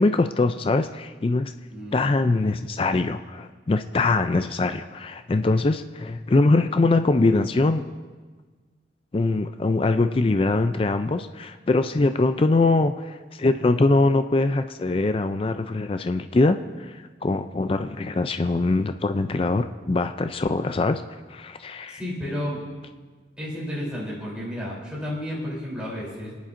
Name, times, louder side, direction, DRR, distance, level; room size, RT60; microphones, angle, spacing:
voice 1, 0.0-1.5 1.9-7.8 9.1-21.0 21.3-22.0, left 2 dB, 30° left, 9 dB, 0.4 m, -22 dB
voice 2, 1.7-2.1 21.9-22.6 23.4-26.3, left 1 dB, 5° right, -7 dB, 3.4 m, -32 dB
26.5 x 10.5 x 2.6 m, 1.4 s
head